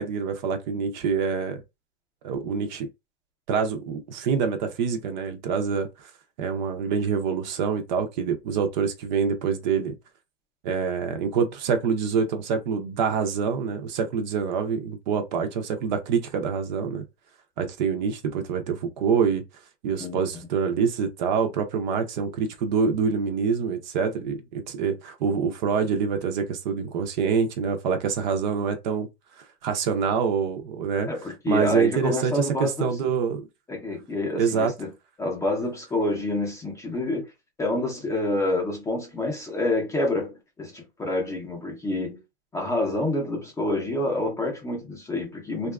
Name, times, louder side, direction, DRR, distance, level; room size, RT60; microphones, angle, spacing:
voice 1, 0.0-1.6 2.2-2.9 3.5-6.1 6.4-10.0 10.6-17.1 17.6-19.4 19.8-29.1 29.4-31.1 31.5-33.4 34.4-34.7, right 6 dB, 45° right, 0.6 m, -26 dB
voice 2, 31.1-32.9 33.7-34.9 35.2-37.3 37.6-42.2 42.5-45.7, left 2 dB, 10° left, 0.6 m, -27 dB
2.7 x 2.3 x 2.3 m
hypercardioid pair, 140°, 32 cm